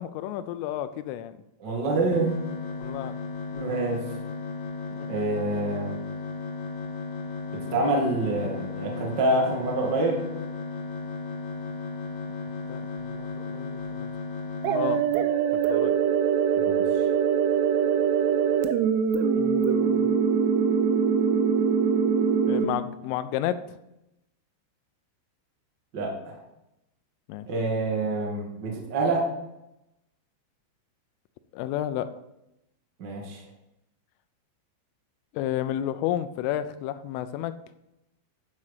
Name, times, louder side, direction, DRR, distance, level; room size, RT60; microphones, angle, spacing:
voice 1, 0.0-1.3 2.8-3.1 4.9-5.1 12.7-14.1 14.7-15.0 15.7-16.0 19.4-20.1 22.5-23.6 27.3-27.5 31.5-32.1 35.3-37.5, left 12 dB, 85° left, 10 dB, 3.1 m, -31 dB
voice 2, 1.6-2.4 3.5-4.0 5.1-6.0 7.5-10.2 16.6-17.0 25.9-26.4 27.4-29.3 33.0-33.4, right 2 dB, 70° right, -1 dB, 1.0 m, -27 dB
sound 1, 2.1-15.0, left 4 dB, 55° left, 2.8 m, -35 dB
sound 2, 14.6-22.6, right 7 dB, 85° right, 3.3 m, -23 dB
10.5 x 5.7 x 6.5 m, 0.88 s
omnidirectional pair, 5.8 m